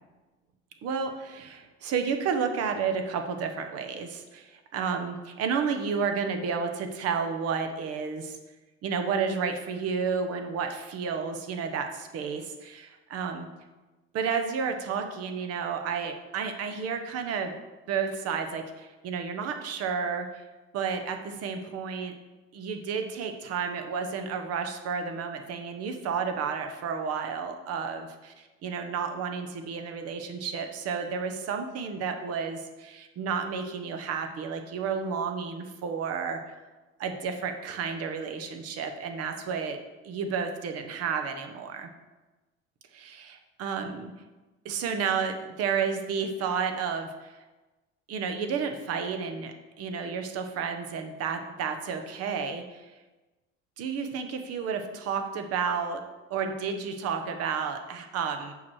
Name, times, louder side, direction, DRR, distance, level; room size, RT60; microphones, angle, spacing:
voice 1, 0.8-8.4 8.8-13.5 14.1-17.5 17.9-20.4 20.7-22.1 22.5-28.3 28.6-36.4 37.0-39.8 40.0-41.9 42.9-44.1 44.6-47.3 48.1-52.9 53.8-56.0 56.3-58.5, right 6 dB, 50° right, 6 dB, 1.1 m, -31 dB
7.1 x 4.9 x 6.2 m, 1.2 s
cardioid pair, 125°, 30 cm